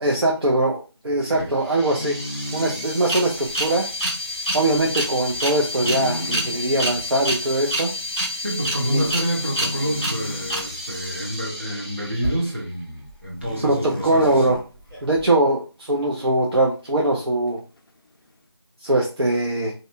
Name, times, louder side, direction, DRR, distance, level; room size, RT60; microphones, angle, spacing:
voice 1, 0.0-2.2 2.5-3.9 4.5-7.9 8.9-9.1 13.6-13.7 14.0-14.6 15.0-17.6 18.8-19.7, right 1 dB, 70° right, -2 dB, 0.6 m, -21 dB
sound 1, 1.7-12.5, equal, 10° left, 0.6 m, -29 dB
sound 2, 1.9-2.9 5.8-6.6 7.0-7.3 9.6-10.5 13.4-14.7 17.8-17.9, left 1 dB, 55° left, 0.5 m, -33 dB
voice 2, 8.4-14.5, equal, 30° right, -4 dB, 0.7 m, -28 dB
sound 3, 8.5-8.6 9.0-9.4 10.2-10.4 10.7-10.9 11.6-15.3, equal, 50° right, 1.3 m, -37 dB
2.6 x 2.2 x 2.6 m, 0.33 s
figure-of-eight pair, 175°, 14 cm